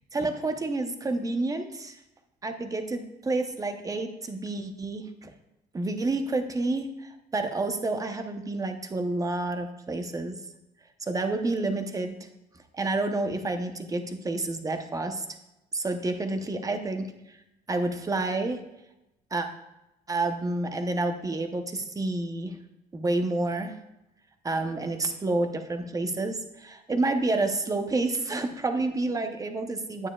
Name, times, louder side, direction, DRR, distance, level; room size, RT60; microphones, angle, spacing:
voice 1, 0.1-2.0 2.4-5.3 5.7-10.4 11.0-12.2 12.7-15.2 15.7-17.4 17.7-18.6 19.3-19.5 20.1-22.6 22.9-23.8 24.4-30.1, right 2 dB, 20° right, 6 dB, 0.9 m, -29 dB
9.8 x 8.9 x 2.4 m, 0.91 s
cardioid pair, 110°, 17 cm